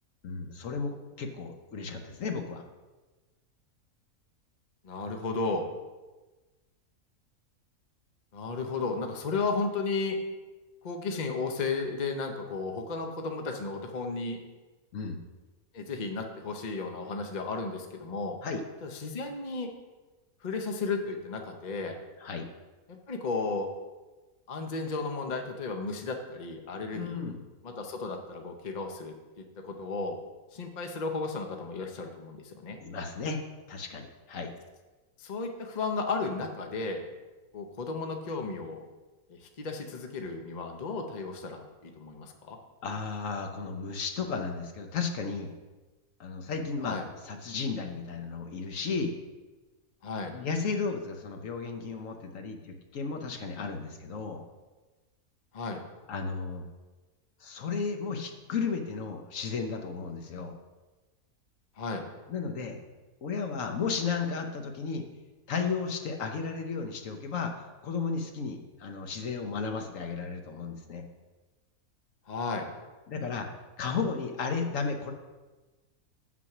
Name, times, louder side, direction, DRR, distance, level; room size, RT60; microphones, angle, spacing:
voice 1, 0.2-2.6 14.9-15.2 18.4-18.6 22.2-22.5 26.9-27.4 32.8-33.4 33.7-34.5 42.8-45.5 46.2-47.0 47.2-49.2 50.3-54.4 56.1-56.6 57.4-60.6 62.3-62.8 63.2-65.0 65.5-71.0 73.1-73.5 73.8-75.1, left 5 dB, 65° left, 4 dB, 1.2 m, -34 dB
voice 2, 4.8-5.6 8.3-10.2 10.8-14.4 15.7-18.4 18.8-19.7 20.4-22.0 22.9-23.7 24.5-27.2 27.6-30.2 30.5-32.8 35.2-37.0 37.5-38.8 39.3-42.6 46.8-47.0 50.0-50.4 55.5-55.8 61.8-62.0 72.3-72.7, left 3 dB, 35° left, 4 dB, 0.8 m, -34 dB
7.9 x 6.0 x 5.9 m, 1.2 s
omnidirectional pair, 1.6 m